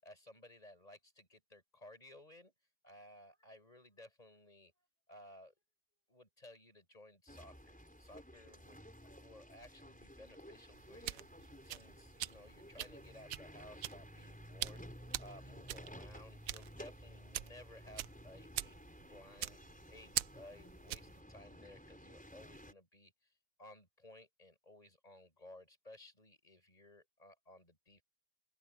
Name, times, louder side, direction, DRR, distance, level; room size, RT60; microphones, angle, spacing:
voice 1, 0.0-2.5 2.8-4.7 5.1-5.5 6.1-8.9 9.2-18.8 19.1-19.6 19.9-23.1 23.6-28.0, left 1 dB, 20° left, 7.0 m, -58 dB
sound 1, 7.3-22.7, equal, 5° left, 5.3 m, -54 dB
sound 2, 10.7-21.2, right 13 dB, 70° right, 0.9 m, -44 dB
open air
omnidirectional pair, 1.8 m